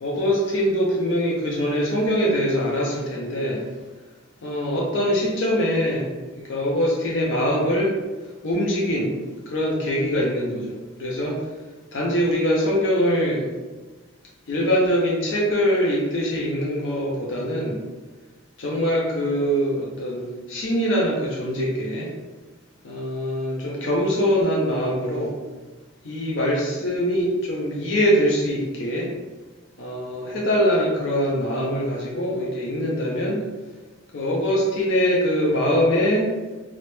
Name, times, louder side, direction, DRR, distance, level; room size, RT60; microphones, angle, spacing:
voice 1, 0.0-3.6 4.4-6.1 6.5-7.9 8.4-9.1 9.5-11.4 11.9-13.5 14.5-17.8 18.6-22.1 22.8-25.3 26.0-29.1 29.8-33.4 34.1-36.3, equal, 65° left, -3 dB, 0.4 m, -23 dB
2.1 x 2.0 x 2.9 m, 1.3 s
head